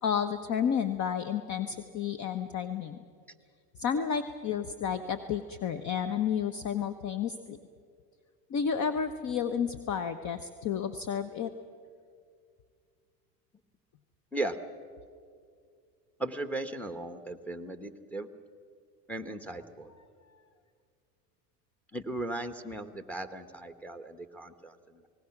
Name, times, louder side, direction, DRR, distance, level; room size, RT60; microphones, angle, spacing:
voice 1, 0.0-3.0 3.8-7.6 8.5-11.5, left 7 dB, 35° left, 11 dB, 0.9 m, -31 dB
voice 2, 16.2-18.3 19.1-19.9 21.9-25.1, right 2 dB, 5° left, 8 dB, 1.2 m, -37 dB
28.0 x 19.0 x 5.9 m, 2.2 s
hypercardioid pair, 100°, 48 cm